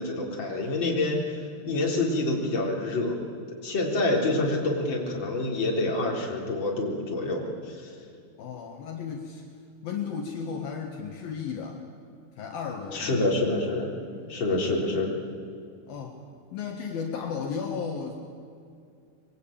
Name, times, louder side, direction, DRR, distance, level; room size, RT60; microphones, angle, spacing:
voice 1, 0.0-3.1 3.6-7.9 12.9-13.9 14.3-15.1, left 2 dB, 30° left, -1 dB, 4.2 m, -27 dB
voice 2, 8.4-9.4 9.8-11.8 12.4-13.2 14.0-14.4 15.9-16.2 16.5-18.1, left 6 dB, 65° left, 1 dB, 3.3 m, -34 dB
26.0 x 22.5 x 8.9 m, 2.4 s
omnidirectional pair, 4.7 m